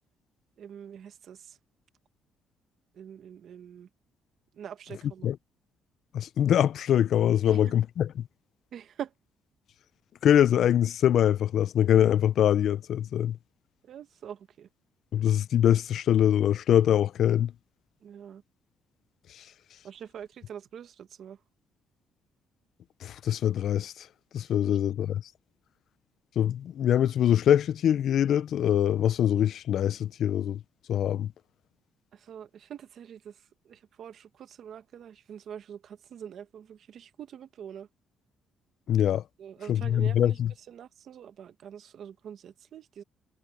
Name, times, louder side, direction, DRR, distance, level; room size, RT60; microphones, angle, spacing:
voice 1, 0.6-1.6 2.9-3.9 4.5-5.3 7.5-7.7 8.7-9.1 13.8-14.7 18.0-18.4 19.8-21.4 24.6-24.8 25.0-25.1 32.1-37.9 39.4-43.0, right 9 dB, 50° right, 1.4 m, -44 dB
voice 2, 6.1-8.1 10.2-13.4 15.1-17.5 19.4-19.5 23.0-24.1 24.3-25.2 26.4-30.6 30.9-31.3 38.9-39.2 39.7-40.5, left 10 dB, 55° left, 0.4 m, -23 dB
cardioid pair, 145°, 0 cm